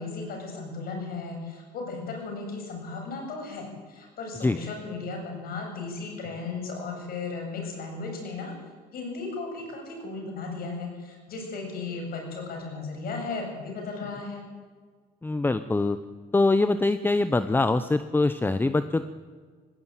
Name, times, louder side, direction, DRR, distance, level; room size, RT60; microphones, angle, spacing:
voice 1, 0.0-8.5 8.9-14.4, left 3 dB, 60° left, 2 dB, 7.9 m, -35 dB
voice 2, 15.2-16.0 16.3-19.1, left 2 dB, 10° left, 12 dB, 0.8 m, -23 dB
19.0 x 16.5 x 9.1 m, 1.5 s
cardioid pair, 110°, 17 cm